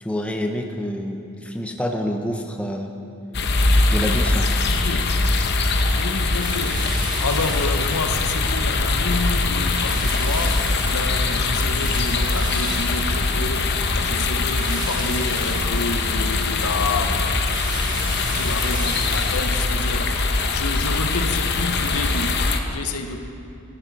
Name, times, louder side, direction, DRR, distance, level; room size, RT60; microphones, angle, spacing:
voice 1, 0.0-2.9 3.9-4.5, equal, 5° left, 3 dB, 0.7 m, -27 dB
sound 1, 3.3-22.6, left 3 dB, 50° left, 0.8 m, -22 dB
voice 2, 4.7-5.3 5.9-17.3 18.2-23.2, left 3 dB, 80° left, 7 dB, 0.9 m, -29 dB
sound 2, 6.2-8.4 8.8-9.2 9.5-13.8 14.5-16.4 16.7-21.0, right 2 dB, 20° right, 1.5 m, -36 dB
16.0 x 11.5 x 4.1 m, 2.8 s
head